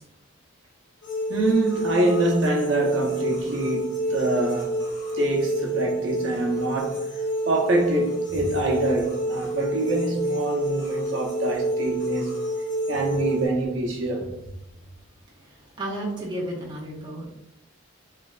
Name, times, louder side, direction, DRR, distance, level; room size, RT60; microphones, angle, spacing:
sound 1, 1.0-13.5, right 1 dB, 70° left, 1.3 m, -28 dB
voice 1, 1.3-4.8 5.1-7.1 7.5-12.3 12.9-14.3, right 2 dB, 65° right, 0.7 m, -25 dB
voice 2, 15.4-17.3, right 1 dB, 20° right, 0.6 m, -33 dB
3.2 x 3.0 x 2.4 m
head